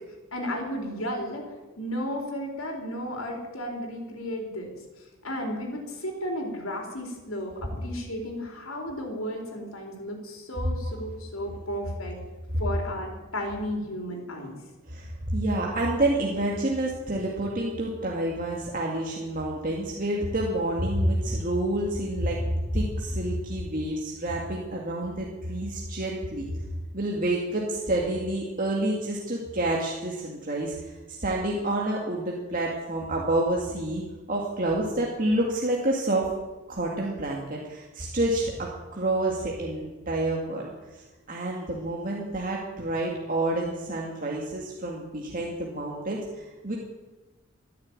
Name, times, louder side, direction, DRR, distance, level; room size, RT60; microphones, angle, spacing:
voice 1, 0.3-1.5 1.8-12.2 12.6-14.6, equal, 80° left, 1 dB, 4.2 m, -34 dB
voice 2, 14.9-22.4 22.7-26.5 26.9-34.0 34.3-36.3 36.7-46.8, right 1 dB, 40° right, -2 dB, 2.0 m, -28 dB
14.0 x 10.5 x 8.9 m, 1.2 s
head